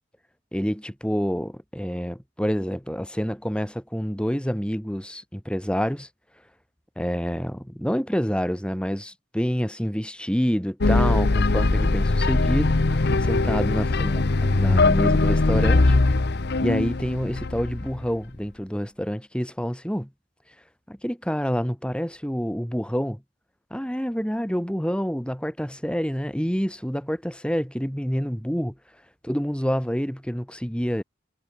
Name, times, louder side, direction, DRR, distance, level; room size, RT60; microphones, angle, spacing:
voice 1, 0.5-6.1 7.0-15.9 16.6-20.1 20.9-23.2 23.7-28.7 29.2-31.0, equal, 5° left, 4.8 m, -27 dB
sound 1, 10.8-18.1, left 2 dB, 55° left, 0.9 m, -21 dB
head